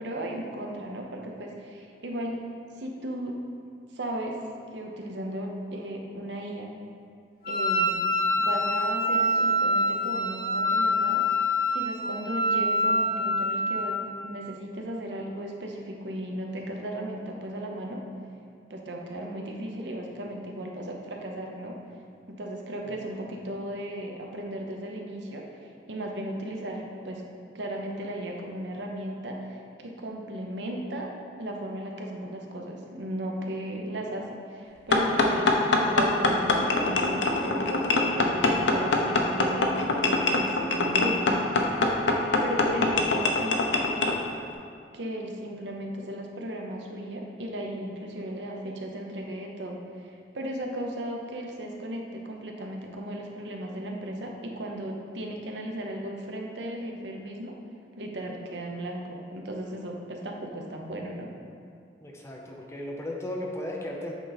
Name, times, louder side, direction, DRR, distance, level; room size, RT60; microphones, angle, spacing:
voice 1, 0.0-2.4 2.8-3.4 3.9-4.4 4.7-6.7 7.5-8.1 8.4-11.3 11.7-18.0 18.7-21.8 22.3-27.2 27.5-31.1 31.4-37.6 38.0-42.0 42.4-44.2 44.9-57.6 58.0-61.3, right 1 dB, 80° right, 1 dB, 0.8 m, -36 dB
Wind instrument woodwind instrument, 7.4-14.0, left 1 dB, 55° left, 1.6 m, -25 dB
sound 1, 34.9-44.2, left 2 dB, 85° left, 0.7 m, -24 dB
voice 2, 62.0-64.1, left 1 dB, 15° left, -1 dB, 0.7 m, -36 dB
8.2 x 3.9 x 4.1 m, 2.4 s
head